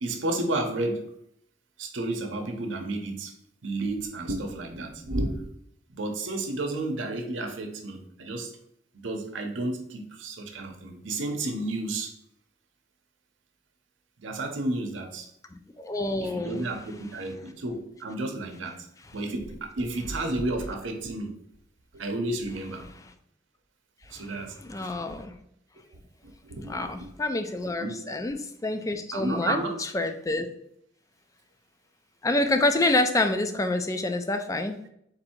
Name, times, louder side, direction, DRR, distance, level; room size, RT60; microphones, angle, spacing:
voice 1, 0.0-1.0 1.8-3.3 3.6-5.4 5.9-8.5 8.9-12.1 14.2-15.3 16.2-18.9 19.1-21.3 21.9-22.9 24.1-25.1 26.2-27.1 27.8-27.9 29.1-29.7, right 2 dB, 85° right, 4 dB, 0.7 m, -32 dB
voice 2, 15.8-16.6 24.1-25.3 26.7-30.5 32.2-34.8, left 2 dB, 15° left, 7 dB, 0.3 m, -27 dB
4.0 x 2.7 x 4.3 m, 0.73 s
head